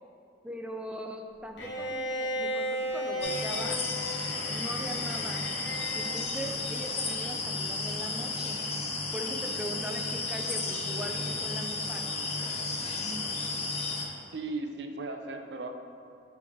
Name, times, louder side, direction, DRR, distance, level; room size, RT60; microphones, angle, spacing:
voice 1, 0.4-3.8 4.5-5.5 5.9-8.6 9.1-12.2, equal, 5° right, 2 dB, 0.4 m, -40 dB
Bowed string instrument, 1.6-6.2, equal, 90° left, 1.1 m, -35 dB
sound 1, 3.2-14.1, left 3 dB, 35° left, 0.6 m, -33 dB
voice 2, 14.3-15.7, right 3 dB, 70° right, 5 dB, 0.5 m, -36 dB
8.6 x 3.4 x 3.5 m, 2.3 s
head